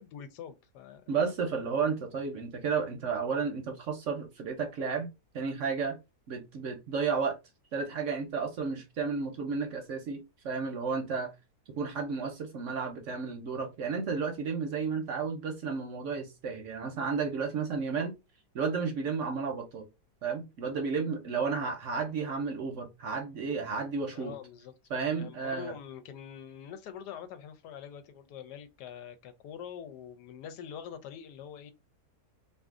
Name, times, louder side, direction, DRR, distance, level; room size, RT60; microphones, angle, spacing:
voice 1, 0.0-1.0 24.1-24.7 25.1-31.7, left 8 dB, 90° left, 1.2 m, -44 dB
voice 2, 1.1-5.1 5.3-6.0 6.3-7.4 7.7-11.3 11.8-18.1 18.5-19.9 20.2-24.3 24.9-25.7, right 5 dB, 65° right, 0.8 m, -32 dB
2.6 x 2.6 x 3.6 m
omnidirectional pair, 1.7 m